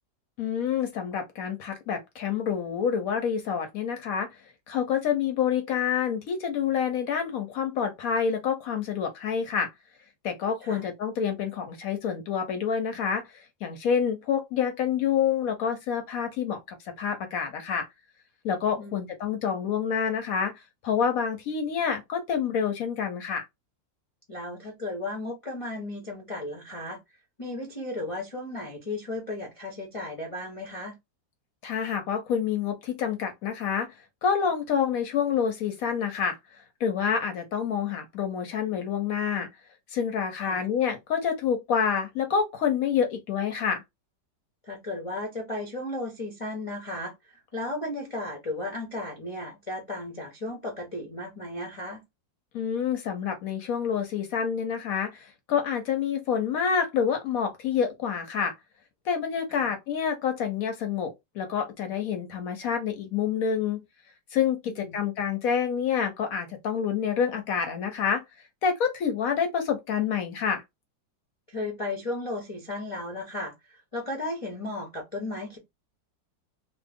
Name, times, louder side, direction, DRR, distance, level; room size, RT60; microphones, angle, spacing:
voice 1, 0.4-4.3 4.7-9.7 10.2-16.6 17.0-17.9 18.4-23.5 31.6-33.9 34.2-36.4 36.8-39.5 39.9-43.8 52.5-58.5 59.1-63.8 64.3-68.2 68.6-70.6, left 7 dB, 70° left, 0.9 m, -27 dB
voice 2, 18.8-19.1 24.3-27.0 27.4-30.9 40.4-40.6 44.6-52.0 59.5-59.7 64.7-64.9 71.5-75.6, left 2 dB, 50° left, 0.4 m, -35 dB
2.9 x 2.1 x 3.4 m
omnidirectional pair, 2.0 m